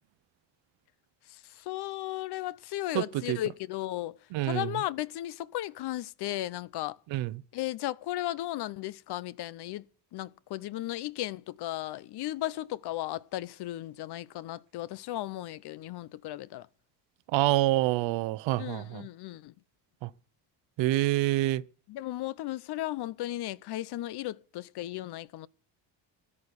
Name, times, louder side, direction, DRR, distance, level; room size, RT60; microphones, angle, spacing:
voice 1, 1.3-4.2 4.4-7.0 7.5-9.8 10.1-16.7 18.6-19.5 21.9-25.5, left 15 dB, 65° left, 0.8 m, -35 dB
voice 2, 2.9-3.4 4.3-4.7 7.1-7.3 17.3-19.1 20.0-20.1 20.8-21.6, right 17 dB, 90° right, 0.9 m, -27 dB
14.0 x 8.6 x 9.5 m
cardioid pair, 135°, 44 cm